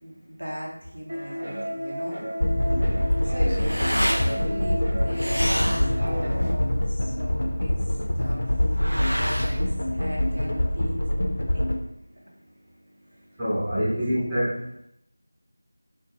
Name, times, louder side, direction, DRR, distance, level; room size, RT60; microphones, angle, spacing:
voice 1, 0.0-2.2 2.6-2.9 3.2-11.7 13.1-13.3 13.9-14.4, equal, 60° right, -3 dB, 1.1 m, -40 dB
sound 1, 1.1-6.5, equal, 40° right, 0.8 m, -32 dB
sound 2, 2.4-11.8, left 1 dB, 55° left, 0.5 m, -25 dB
sound 3, 2.8-10.7, equal, 85° right, 0.5 m, -32 dB
voice 2, 13.4-14.6, equal, 5° right, -14 dB, 0.6 m, -25 dB
4.8 x 2.2 x 2.8 m, 0.76 s
figure-of-eight pair, 170°, 0 cm